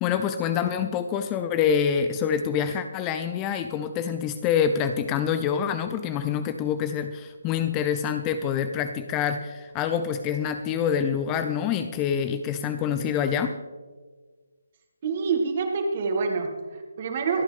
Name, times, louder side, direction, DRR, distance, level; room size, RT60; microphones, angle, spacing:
voice 1, 0.0-13.6, left 8 dB, 20° left, 9 dB, 0.6 m, -26 dB
voice 2, 15.0-17.4, right 4 dB, 35° right, 4 dB, 2.2 m, -27 dB
25.0 x 9.3 x 3.5 m, 1.4 s
figure-of-eight pair, 150°, 0 cm